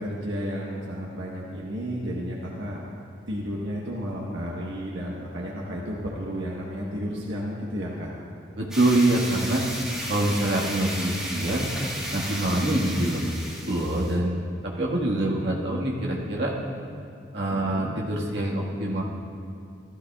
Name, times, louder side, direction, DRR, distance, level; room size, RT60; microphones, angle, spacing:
voice 1, 0.0-2.8 3.3-8.1 17.5-18.0, equal, 80° right, -4 dB, 1.2 m, -32 dB
voice 2, 8.6-9.6 10.1-11.7 12.1-13.4 13.7-16.5 17.3-19.0, right 1 dB, 65° right, -3 dB, 1.6 m, -25 dB
sound 1, 8.7-14.2, right 1 dB, 5° right, 1.4 m, -34 dB
15.5 x 13.5 x 2.4 m, 2.7 s
head